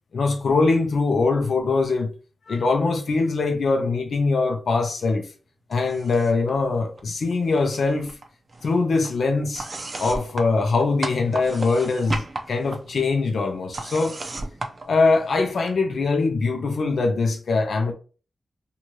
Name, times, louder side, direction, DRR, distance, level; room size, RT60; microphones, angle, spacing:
voice 1, 0.1-2.1 2.5-5.3 5.7-8.1 8.6-9.7 10.0-14.2 14.9-17.9, left 3 dB, 80° left, 0.7 m, -22 dB
sound 1, 5.7-6.5 6.8-7.8 8.1-15.6, right 2 dB, 40° right, 0.5 m, -36 dB
2.7 x 2.4 x 3.0 m
wide cardioid pair, 135°, 0 cm